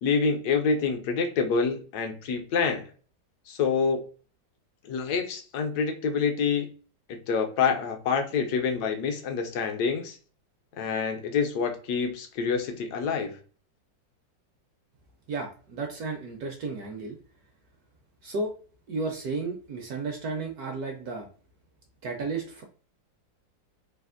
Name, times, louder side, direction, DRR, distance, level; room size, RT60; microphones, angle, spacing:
voice 1, 0.0-2.8 3.5-4.0 4.9-6.7 7.1-10.2 10.8-13.4, left 5 dB, 75° left, 5 dB, 0.9 m, -27 dB
voice 2, 15.3-17.2 18.2-18.5 18.9-21.3 22.0-22.6, right 3 dB, 70° right, 2 dB, 0.9 m, -33 dB
3.3 x 2.4 x 2.4 m, 0.40 s
omnidirectional pair, 2.1 m